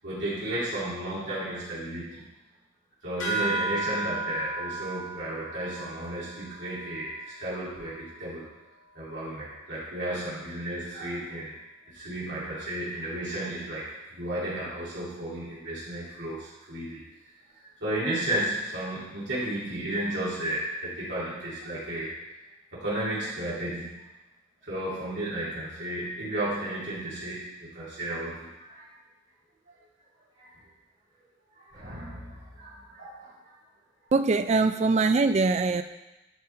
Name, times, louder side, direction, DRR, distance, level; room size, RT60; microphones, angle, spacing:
voice 1, 0.0-2.2 3.0-8.4 8.9-11.5 11.9-13.8 14.1-17.0 17.5-22.3 22.7-24.0 24.6-28.9 30.4-30.6 31.6-33.6, right 1 dB, 60° right, -9 dB, 2.8 m, -33 dB
sound 1, 3.2-8.1, right 3 dB, 80° left, 2.3 m, -35 dB
voice 2, 34.1-35.8, right 3 dB, 35° right, 9 dB, 0.3 m, -22 dB
11.0 x 3.8 x 4.4 m, 1.0 s
head